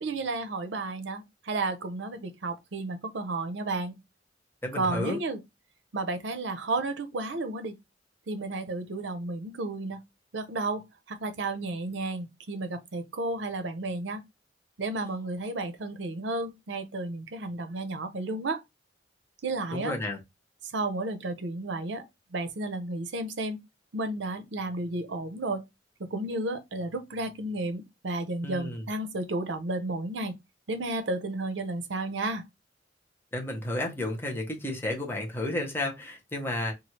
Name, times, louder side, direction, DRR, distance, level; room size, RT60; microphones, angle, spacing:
voice 1, 0.0-4.0 4.8-5.4 5.9-7.7 8.3-10.0 10.3-10.8 11.1-14.2 14.8-18.6 19.4-19.9 20.7-22.0 22.3-23.6 23.9-25.6 26.0-30.4 30.7-32.4, right 2 dB, 75° right, 0.6 m, -32 dB
voice 2, 4.6-5.2 19.7-20.2 28.4-28.9 33.3-36.7, left 1 dB, 15° left, 0.7 m, -32 dB
3.1 x 2.4 x 2.8 m
head